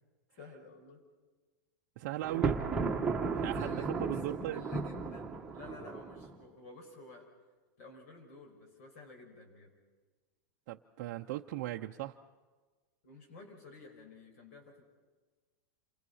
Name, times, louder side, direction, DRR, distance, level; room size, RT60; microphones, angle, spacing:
voice 1, 0.4-1.0 3.3-7.3 7.8-9.7 13.0-14.8, left 2 dB, 50° left, 4 dB, 5.7 m, -52 dB
voice 2, 2.0-2.6 3.4-4.6 10.7-12.2, right 15 dB, 45° right, 1 dB, 0.7 m, -38 dB
Thunder, 2.2-6.3, right 4 dB, 5° right, 1.6 m, -34 dB
28.5 x 24.5 x 5.6 m, 1.3 s
supercardioid pair, 170°, 10 cm